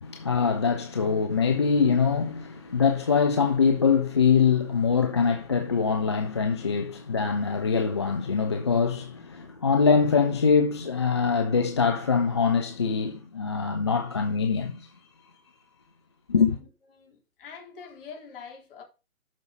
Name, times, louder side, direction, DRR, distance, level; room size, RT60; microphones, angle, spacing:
voice 1, 0.0-14.9 16.3-16.6, left 5 dB, 20° left, 0.4 m, -23 dB
voice 2, 16.5-18.8, left 6 dB, 40° left, 4.0 m, -45 dB
12.5 x 5.3 x 5.3 m
figure-of-eight pair, 135°, 42 cm